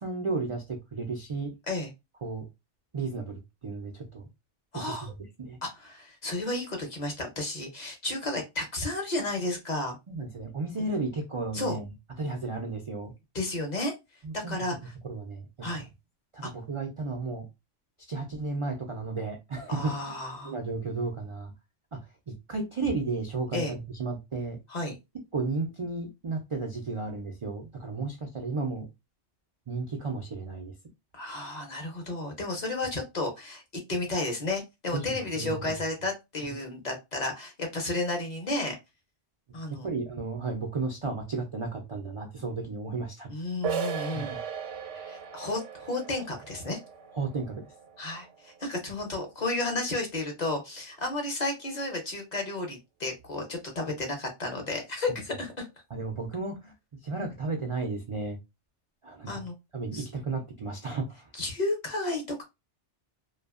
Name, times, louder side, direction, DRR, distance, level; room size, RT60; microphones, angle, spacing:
voice 1, 0.0-1.5 2.2-2.5 2.9-4.3 4.7-5.1 5.4-5.6 10.1-11.9 12.2-13.1 14.2-14.6 15.0-15.8 16.3-17.5 18.1-20.0 20.4-21.5 21.9-22.0 22.3-24.6 25.3-28.9 29.7-30.7 34.9-35.5 39.7-43.3 44.1-44.4 47.1-47.6 55.9-56.7 57.0-58.4 59.0-59.4 59.7-61.3, right 3 dB, 55° right, 2 dB, 0.3 m, -33 dB
voice 2, 4.7-5.1 5.6-10.0 11.5-11.8 13.3-13.9 14.3-14.9 15.6-15.9 16.4-16.5 19.7-20.5 23.5-23.7 24.7-25.0 31.1-33.6 33.9-38.8 39.5-39.9 43.3-44.3 45.0-46.8 48.0-55.7 59.3-59.5 59.9-60.1 61.3-62.4, left 2 dB, 45° left, 3 dB, 0.7 m, -32 dB
sound 1, 43.6-49.1, right 7 dB, 85° right, 0.9 m, -37 dB
2.7 x 2.2 x 2.4 m, 0.23 s
omnidirectional pair, 1.2 m